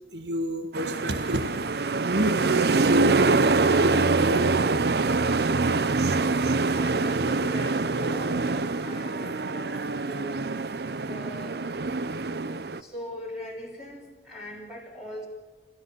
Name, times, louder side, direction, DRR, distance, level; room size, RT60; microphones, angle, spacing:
voice 1, 0.1-4.4, equal, 80° right, 7 dB, 1.6 m, -29 dB
sound 1, 0.7-12.8, right 3 dB, 60° right, 0.7 m, -25 dB
voice 2, 6.7-10.5 11.1-11.6 12.8-15.3, left 1 dB, 5° right, -3 dB, 3.2 m, -40 dB
29.0 x 14.0 x 6.9 m, 1.3 s
head